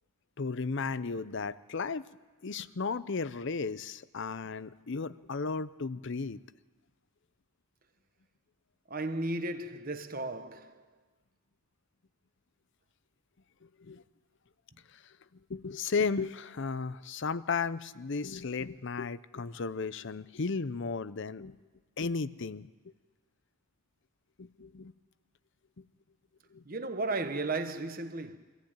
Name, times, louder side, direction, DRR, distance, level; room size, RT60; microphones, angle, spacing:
voice 1, 0.4-2.0 2.4-6.4 13.6-14.0 15.5-21.6 22.0-22.7 24.4-24.9 26.5-26.6, left 4 dB, 55° left, 0.6 m, -34 dB
voice 2, 8.9-10.7 26.6-28.4, right 2 dB, 40° right, 1.2 m, -34 dB
24.0 x 14.5 x 8.9 m
head